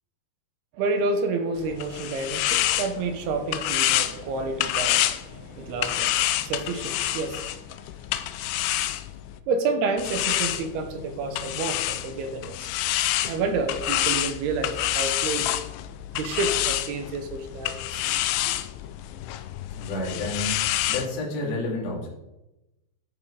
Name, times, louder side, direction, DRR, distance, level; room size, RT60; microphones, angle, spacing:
voice 1, 0.7-7.5 9.5-12.7 13.2-15.5 16.1-18.0 18.4-18.6, right 3 dB, 70° right, 7 dB, 2.7 m, -29 dB
sound 1, 1.6-9.4 10.0-21.1, left 14 dB, 85° left, 3.0 m, -28 dB
voice 2, 19.8-22.1, left 2 dB, 40° left, -4 dB, 3.6 m, -30 dB
13.0 x 7.5 x 4.9 m, 0.96 s
omnidirectional pair, 5.3 m